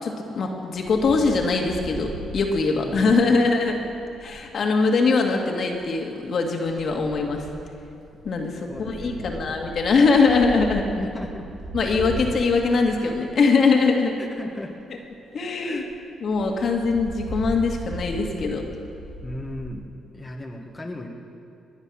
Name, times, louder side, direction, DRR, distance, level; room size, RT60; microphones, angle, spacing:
voice 1, 0.0-3.8 4.2-7.5 8.2-10.9 11.7-14.2 15.3-15.8 16.2-18.7, left 4 dB, 55° left, 1 dB, 1.9 m, -22 dB
Wind, 0.7-4.4 5.5-5.9 6.6-13.6 14.2-14.3 14.5-14.6 15.0-15.1 15.4-15.5 15.7-15.8 16.3-19.6, right 1 dB, 85° right, 3.6 m, -38 dB
voice 2, 2.7-3.5 8.7-9.5 10.9-11.5 14.2-14.8 15.6-15.9 16.6-16.7 19.2-19.9 20.1-21.1, left 1 dB, 15° left, 0 dB, 1.5 m, -36 dB
21.0 x 8.1 x 6.2 m, 2.7 s
cardioid pair, 90°, 0 cm